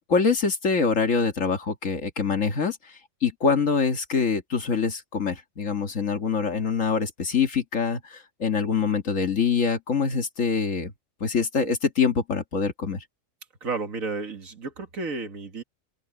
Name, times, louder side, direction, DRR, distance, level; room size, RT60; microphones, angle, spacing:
voice 1, 0.1-2.8 3.2-8.0 8.4-10.9 11.2-13.0, left 5 dB, 65° left, 2.1 m, -24 dB
voice 2, 13.6-15.6, right 4 dB, 70° right, 2.3 m, -32 dB
open air
omnidirectional pair, 1.5 m